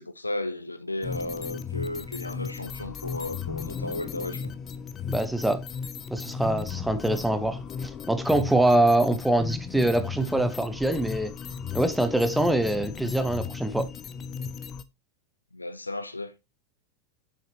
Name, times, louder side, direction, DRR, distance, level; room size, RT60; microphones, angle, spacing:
voice 1, 0.0-4.5 15.5-16.3, left 2 dB, 85° left, 0.6 m, -34 dB
sound 1, 1.0-14.8, left 6 dB, 25° left, 0.6 m, -35 dB
voice 2, 5.1-5.6 6.1-11.3 11.7-13.9, right 1 dB, 5° right, 0.9 m, -24 dB
6.9 x 6.3 x 2.9 m
figure-of-eight pair, 90°, 0 cm